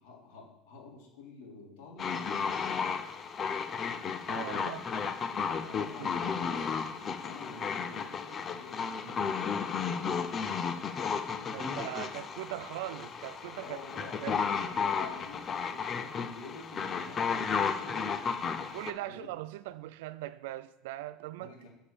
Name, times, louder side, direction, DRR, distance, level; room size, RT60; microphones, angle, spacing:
voice 1, 0.0-2.6 4.4-4.8 5.5-10.4 11.3-12.2 13.6-14.3 14.6-18.3 19.0-19.3 21.4-21.7, left 3 dB, 70° left, 3.4 m, -49 dB
sound 1, 2.0-18.9, left 6 dB, 20° left, 0.5 m, -33 dB
voice 2, 4.3-4.8 5.7-6.1 11.5-14.4 18.7-21.7, right 15 dB, 70° right, 0.5 m, -40 dB
7.4 x 6.7 x 6.8 m
cardioid pair, 180°, 0 cm